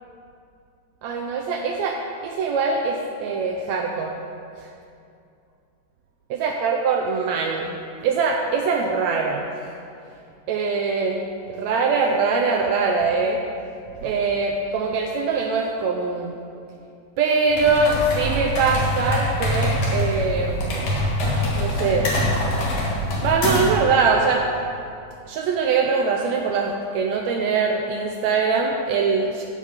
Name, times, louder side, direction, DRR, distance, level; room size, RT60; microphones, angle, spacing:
voice 1, 1.0-4.2 4.6-4.7 6.3-7.7 8.0-9.8 10.5-13.4 14.0-16.3 17.2-20.9 21.5-22.1 23.2-24.5 25.3-29.5, right 4 dB, 80° right, 1 dB, 1.8 m, -23 dB
sound 1, 17.5-23.8, left 1 dB, 65° left, 2.7 m, -24 dB
15.0 x 5.0 x 5.1 m, 2.5 s
omnidirectional pair, 3.3 m